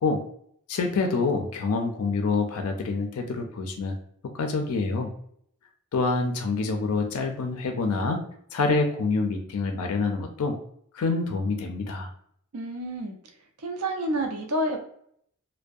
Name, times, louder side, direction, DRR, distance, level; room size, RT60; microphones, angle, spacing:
voice 1, 0.7-3.9 4.3-5.1 5.9-8.2 8.5-10.6 10.9-12.1, left 3 dB, 75° left, 4 dB, 0.4 m, -26 dB
voice 2, 12.5-13.2 13.6-14.8, right 1 dB, 70° right, 3 dB, 0.4 m, -29 dB
2.6 x 2.1 x 2.3 m, 0.67 s
head